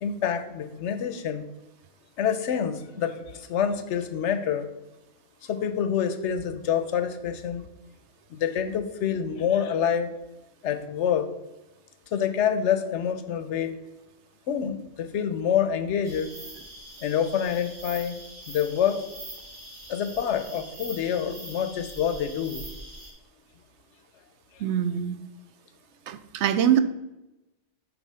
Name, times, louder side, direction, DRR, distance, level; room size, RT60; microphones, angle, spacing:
voice 1, 0.0-1.4 2.2-4.7 5.4-7.6 8.3-10.1 10.6-11.3 12.1-13.8 14.5-16.3 17.0-18.2 18.5-19.0 19.9-22.6 24.6-24.7, left 8 dB, 90° left, 10 dB, 1.0 m, -27 dB
sound 1, 16.0-23.1, right 1 dB, 45° right, 1.8 m, -43 dB
voice 2, 24.6-25.2 26.1-26.8, right 9 dB, 80° right, 10 dB, 0.9 m, -23 dB
7.3 x 4.0 x 5.5 m, 0.97 s
omnidirectional pair, 1.2 m